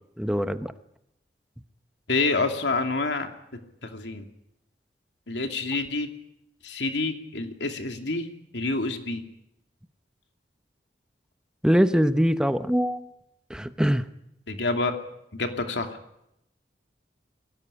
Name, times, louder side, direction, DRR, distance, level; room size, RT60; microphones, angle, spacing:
voice 1, 0.2-0.7 11.6-13.1 13.5-14.1, equal, 5° right, 11 dB, 1.0 m, -23 dB
voice 2, 2.1-3.3 3.8-4.2 5.3-6.1 6.6-8.3 8.5-9.2 14.5-15.0 15.3-16.0, left 3 dB, 80° left, 6 dB, 2.7 m, -27 dB
22.5 x 17.5 x 10.0 m, 0.81 s
head